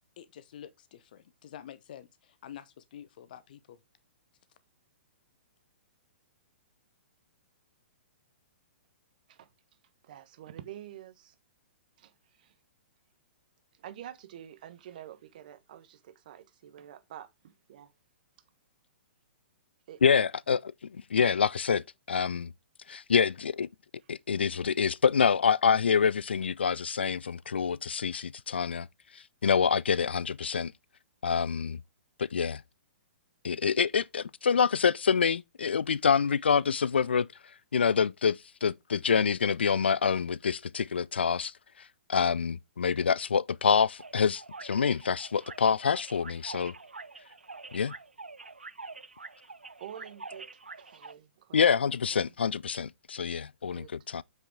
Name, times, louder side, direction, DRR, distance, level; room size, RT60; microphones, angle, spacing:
voice 1, 0.2-3.8 4.5-4.6, left 10 dB, 50° left, 0.8 m, -48 dB
voice 2, 10.0-11.3 12.0-12.5 13.7-17.9 19.9-20.0 24.4-24.5 49.8-50.5 50.8-51.7 52.1-52.3 53.7-53.9, right 11 dB, 45° right, 1.3 m, -48 dB
voice 3, 20.0-22.5 22.9-23.7 24.1-28.9 29.1-30.7 31.2-31.8 32.2-32.6 33.4-37.3 37.7-41.5 42.1-46.7 47.7-47.9 51.5-54.2, left 6 dB, 70° left, 0.3 m, -26 dB
sound 1, 44.0-51.1, right 3 dB, 80° right, 0.5 m, -46 dB
7.6 x 5.7 x 3.6 m
figure-of-eight pair, 115°, 6 cm